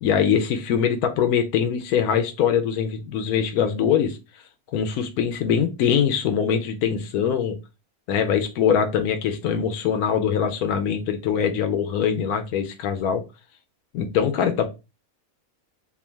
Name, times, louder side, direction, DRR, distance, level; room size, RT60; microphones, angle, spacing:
voice 1, 0.0-4.2 4.7-7.5 8.1-13.2 13.9-14.7, left 8 dB, 85° left, 6 dB, 1.2 m, -22 dB
3.5 x 2.2 x 4.4 m, 0.27 s
omnidirectional pair, 1.6 m